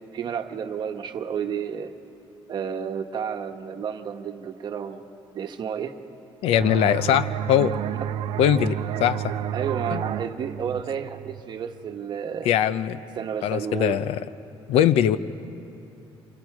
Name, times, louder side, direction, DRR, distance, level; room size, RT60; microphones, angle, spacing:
voice 1, 0.1-1.9 2.5-5.0 5.3-5.9 9.5-12.5 13.1-14.0, right 7 dB, 50° right, 6 dB, 1.1 m, -31 dB
voice 2, 6.4-7.7 8.4-9.3 9.9-10.0 12.4-13.0 13.4-14.2 14.7-15.2, left 10 dB, 90° left, 14 dB, 0.7 m, -21 dB
sound 1, 6.6-12.0, right 10 dB, 75° right, 0.5 m, -31 dB
27.5 x 27.0 x 4.8 m, 2.9 s
cardioid pair, 145°, 10 cm